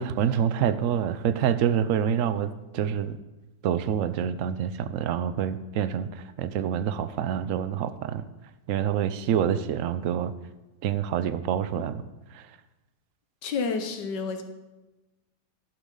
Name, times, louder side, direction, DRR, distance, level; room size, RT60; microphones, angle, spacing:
voice 1, 0.0-3.2 3.6-8.3 8.7-10.3 10.8-12.0 12.3-12.6, right 9 dB, 70° right, 13 dB, 0.7 m, -27 dB
voice 2, 13.4-14.4, left 4 dB, 75° left, 6 dB, 1.7 m, -29 dB
11.5 x 10.5 x 3.8 m, 1.1 s
omnidirectional pair, 1.9 m